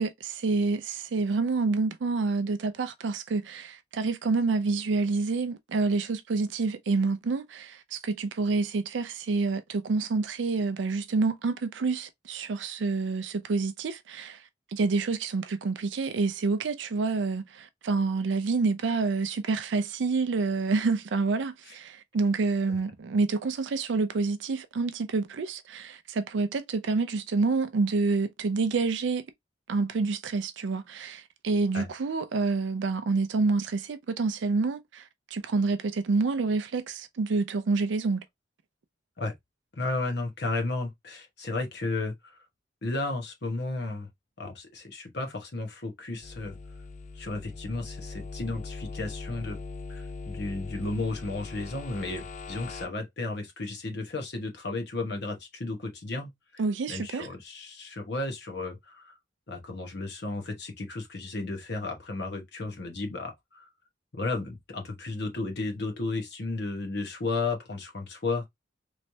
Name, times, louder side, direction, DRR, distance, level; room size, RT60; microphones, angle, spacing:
voice 1, 0.0-14.4 14.7-29.2 29.7-35.0 35.3-38.2 56.6-57.3, right 4 dB, 75° right, 0.4 m, -28 dB
voice 2, 39.8-42.5 42.8-44.1 44.4-46.6 47.1-49.6 49.9-56.6 56.9-59.1 59.5-63.7 64.1-68.5, left 2 dB, 65° left, 1.2 m, -33 dB
sound 1, 46.2-52.9, left 4 dB, 40° left, 0.4 m, -40 dB
3.1 x 3.1 x 2.7 m
head